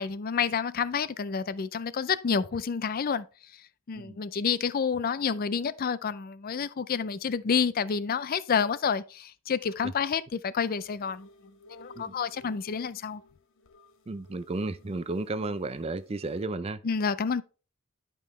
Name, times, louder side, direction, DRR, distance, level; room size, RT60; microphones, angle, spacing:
voice 1, 0.0-3.3 3.9-11.3 11.7-13.2 16.8-17.4, left 6 dB, 45° left, 0.4 m, -29 dB
sound 1, 10.8-16.5, left 2 dB, 60° left, 1.0 m, -55 dB
voice 2, 14.1-16.8, right 2 dB, 30° right, 0.4 m, -33 dB
10.5 x 5.4 x 3.2 m
head